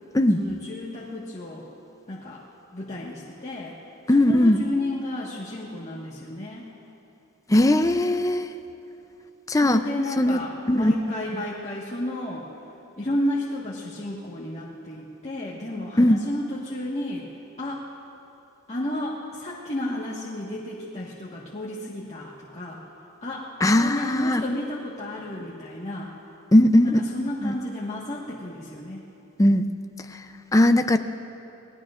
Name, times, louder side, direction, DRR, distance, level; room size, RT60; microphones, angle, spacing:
voice 1, 0.3-1.7 2.1-2.4 2.7-3.8 4.1-6.7 9.5-12.5 13.0-17.3 17.6-17.8 18.7-22.8 23.2-26.1 26.8-29.0, left 1 dB, 35° left, -6 dB, 1.5 m, -32 dB
voice 2, 4.1-4.6 7.5-8.5 9.5-9.8 10.2-10.4 10.7-10.9 16.0-16.2 23.6-24.4 26.5-27.0 27.4-27.5 29.4-29.7 30.5-31.0, left 1 dB, 15° left, 8 dB, 0.5 m, -18 dB
29.5 x 18.5 x 2.5 m, 2.8 s
head